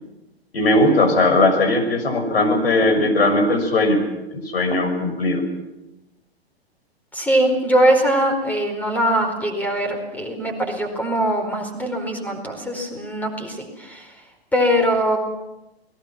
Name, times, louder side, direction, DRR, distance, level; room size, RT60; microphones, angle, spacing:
voice 1, 0.5-4.0 4.3-5.4, left 2 dB, 70° left, 5 dB, 6.2 m, -18 dB
voice 2, 7.1-14.1 14.5-15.2, right 1 dB, 5° left, 5 dB, 4.7 m, -21 dB
29.0 x 20.0 x 6.1 m, 0.95 s
figure-of-eight pair, 115°, 32 cm